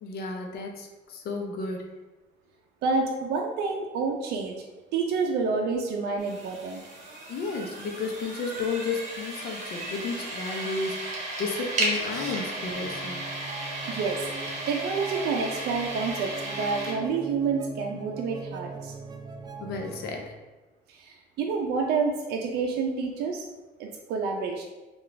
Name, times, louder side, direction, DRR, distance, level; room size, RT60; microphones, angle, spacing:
voice 1, 0.0-1.9 7.3-13.3 19.6-20.3, left 4 dB, 70° left, 2 dB, 0.6 m, -33 dB
voice 2, 2.8-4.6 4.9-6.8 13.9-14.3 14.7-18.9 20.9-23.5 23.8-24.6, right 4 dB, 75° right, 1 dB, 0.5 m, -28 dB
sound 1, 6.2-16.9, right 2 dB, 45° right, 1.1 m, -34 dB
sound 2, 12.7-20.2, right 3 dB, 25° right, 0.4 m, -41 dB
3.8 x 2.4 x 3.2 m, 1.2 s
cardioid pair, 110°, 17 cm